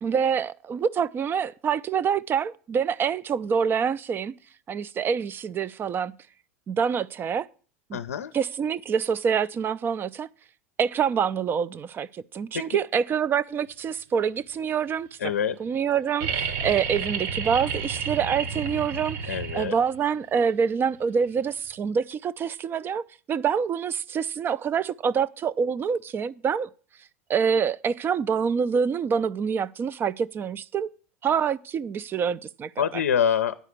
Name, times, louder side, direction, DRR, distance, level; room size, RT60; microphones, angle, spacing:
voice 1, 0.0-4.3 4.7-6.2 6.7-7.5 7.9-8.0 8.3-10.3 10.8-15.1 15.6-26.7 27.3-30.9 31.2-33.0, right 7 dB, 30° right, 0.4 m, -26 dB
voice 2, 7.9-8.3 12.5-12.6 15.2-15.6 19.3-19.8 32.8-33.6, left 8 dB, 80° left, 0.5 m, -25 dB
sound 1, 16.2-20.0 21.7-21.8, right 6 dB, 55° right, 1.2 m, -31 dB
10.0 x 4.9 x 8.0 m
hypercardioid pair, 85°, 8 cm